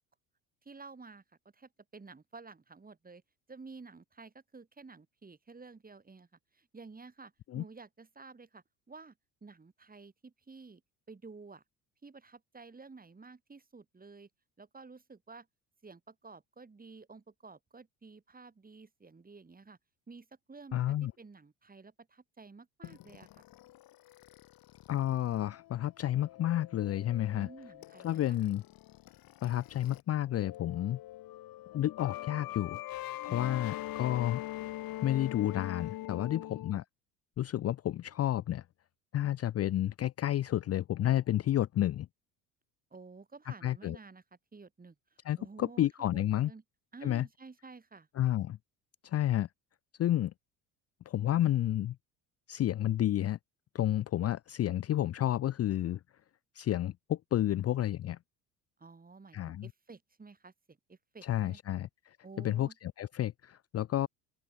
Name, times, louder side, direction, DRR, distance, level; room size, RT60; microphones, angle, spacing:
voice 1, 0.6-1.2 1.5-3.2 3.5-6.3 6.5-9.1 9.4-10.8 11.1-11.6 12.0-14.3 14.6-15.5 15.8-19.8 20.1-23.4 27.3-28.4 33.3-33.6 33.9-34.2 36.2-36.8 42.9-44.2 44.5-45.9 46.1-46.6 46.9-48.1 58.8-61.6 62.2-62.7, right 4 dB, 20° right, 6.8 m, -52 dB
voice 2, 20.7-21.1 24.9-27.5 28.0-28.6 29.4-31.0 31.7-32.8 33.2-34.4 35.0-36.8 37.4-38.6 39.1-42.1 43.6-44.0 45.2-46.5 47.0-47.3 48.2-48.6 49.0-49.5 50.0-50.3 51.1-52.0 52.5-53.4 53.7-56.0 56.5-58.2 59.3-59.7 61.2-64.1, left 12 dB, 40° left, 0.6 m, -31 dB
sound 1, 22.8-30.0 30.3-36.7, left 15 dB, 60° left, 2.1 m, -43 dB
open air
supercardioid pair, 80°, 39 cm